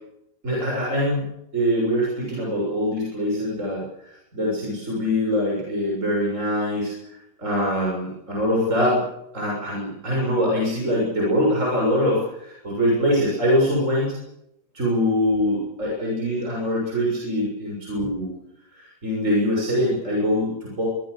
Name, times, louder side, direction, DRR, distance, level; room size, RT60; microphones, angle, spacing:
voice 1, 0.4-1.3 1.5-7.0 7.4-9.0 9.3-14.2 14.7-18.3 18.7-20.9, equal, 35° right, -3 dB, 7.2 m, -23 dB
25.5 x 23.0 x 6.8 m, 0.81 s
omnidirectional pair, 2.2 m